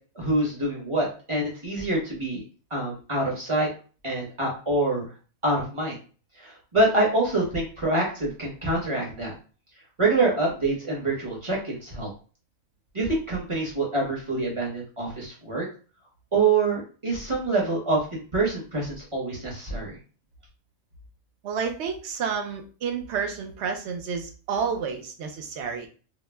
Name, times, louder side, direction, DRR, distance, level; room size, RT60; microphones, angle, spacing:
voice 1, 0.2-2.4 2.7-3.7 4.0-5.0 5.4-6.0 6.4-9.3 10.0-12.1 12.9-15.7 16.3-20.0, right 2 dB, 30° right, -3 dB, 0.6 m, -26 dB
voice 2, 21.4-25.9, right 6 dB, 65° right, 4 dB, 0.7 m, -30 dB
2.3 x 2.0 x 3.2 m, 0.37 s
omnidirectional pair, 1.5 m